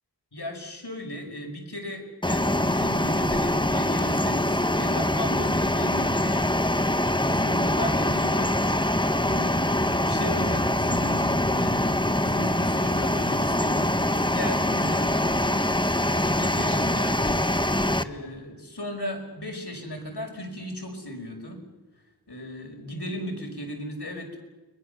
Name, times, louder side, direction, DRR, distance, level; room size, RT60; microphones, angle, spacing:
voice 1, 0.3-6.4 7.2-9.8 10.1-15.6 16.1-17.4 18.0-21.6 22.3-24.4, equal, 75° left, 2 dB, 5.7 m, -36 dB
sound 1, 2.2-18.0, left 1 dB, 10° left, 1.1 m, -24 dB
30.0 x 22.5 x 6.9 m, 1.2 s
wide cardioid pair, 45°, 40 cm